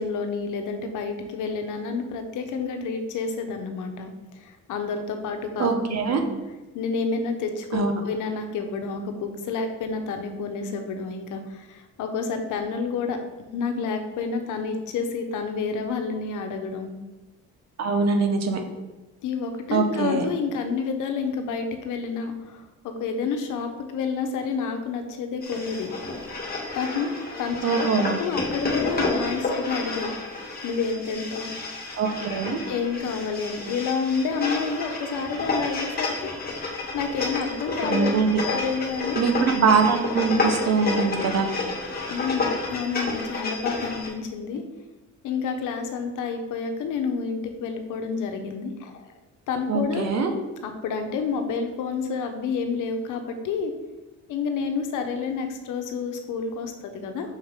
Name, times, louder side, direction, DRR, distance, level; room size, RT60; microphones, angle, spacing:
voice 1, 0.0-6.2 6.7-13.2 13.5-16.9 19.2-26.0 26.7-31.5 32.7-38.1 38.4-39.2 42.1-44.6 45.2-49.1 49.5-50.1 50.6-53.7 54.3-57.4, left 5 dB, 85° left, 5 dB, 1.0 m, -29 dB
voice 2, 5.6-6.2 7.7-7.9 17.8-18.6 19.7-20.2 27.6-28.2 32.0-32.6 37.8-38.4 39.2-41.5 49.7-50.3, right 5 dB, 60° right, 5 dB, 1.2 m, -23 dB
sound 1, 25.4-44.1, left 3 dB, 30° left, 1.8 m, -30 dB
6.9 x 6.3 x 3.7 m, 1.1 s
cardioid pair, 90°, 30 cm